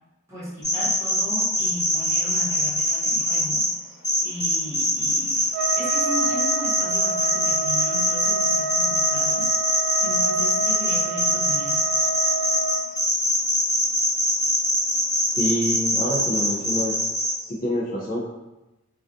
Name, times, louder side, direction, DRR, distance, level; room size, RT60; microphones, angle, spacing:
voice 1, 0.3-3.7 4.2-5.5 5.8-9.5 10.0-11.8, equal, 15° right, -8 dB, 0.7 m, -36 dB
sound 1, 0.6-3.7 4.0-17.3, equal, 15° left, 0.8 m, -22 dB
Trumpet, 5.5-12.8, right 6 dB, 60° right, 0.4 m, -29 dB
voice 2, 15.4-17.0 17.4-18.3, equal, 40° left, -3 dB, 0.4 m, -26 dB
2.3 x 2.3 x 2.5 m, 1.0 s
head